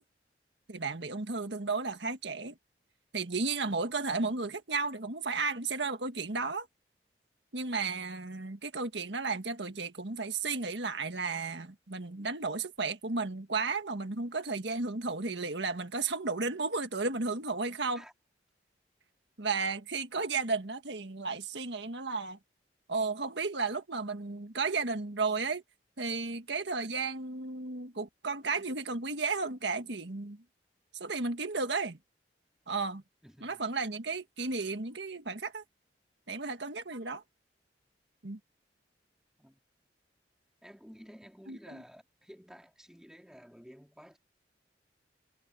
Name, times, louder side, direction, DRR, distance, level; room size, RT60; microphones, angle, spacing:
voice 1, 0.7-2.6 3.1-6.7 7.5-18.0 19.4-22.4 22.9-25.6 26.0-30.4 31.0-32.0 32.7-33.0 33.4-35.6 36.3-37.2 38.2-38.4 41.5-41.8, right 4 dB, 75° right, 1.7 m, -33 dB
voice 2, 33.2-33.6 39.4-39.6 40.6-44.2, equal, 5° right, 3.5 m, -53 dB
head